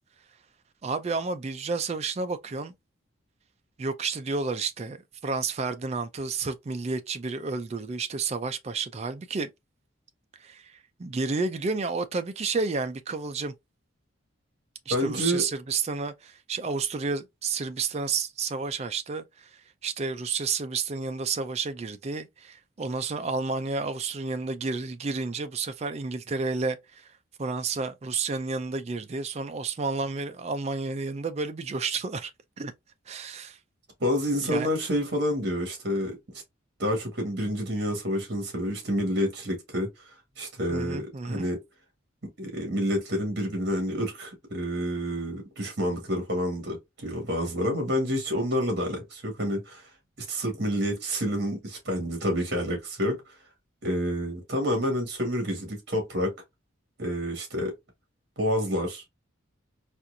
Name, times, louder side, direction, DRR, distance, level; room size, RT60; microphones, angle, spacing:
voice 1, 0.8-2.7 3.8-5.0 5.2-9.5 10.4-13.5 14.9-27.1 27.4-32.3 32.6-32.7 33.1-33.6 34.4-34.7 40.7-41.5, right 4 dB, 30° right, 0.3 m, -31 dB
voice 2, 14.9-15.4 34.0-36.4 36.8-39.9 40.4-41.6 42.4-49.8 50.3-53.2 53.8-56.3 57.0-57.7 58.4-59.1, equal, 55° right, 1.6 m, -28 dB
4.3 x 2.4 x 2.6 m
head